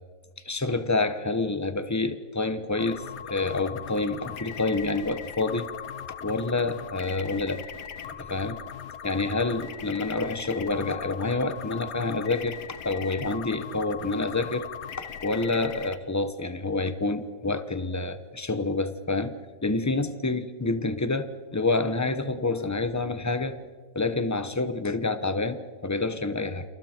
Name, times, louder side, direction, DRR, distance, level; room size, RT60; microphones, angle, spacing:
voice 1, 0.4-3.0 3.3-5.7 6.2-7.6 8.2-8.6 9.0-12.6 12.8-14.7 15.2-19.3 19.6-23.6 23.9-26.6, left 3 dB, 15° left, 10 dB, 0.8 m, -28 dB
sound 1, 2.8-15.9, left 8 dB, 65° left, 1.7 m, -39 dB
29.0 x 28.0 x 4.5 m, 1.5 s
omnidirectional pair, 1.9 m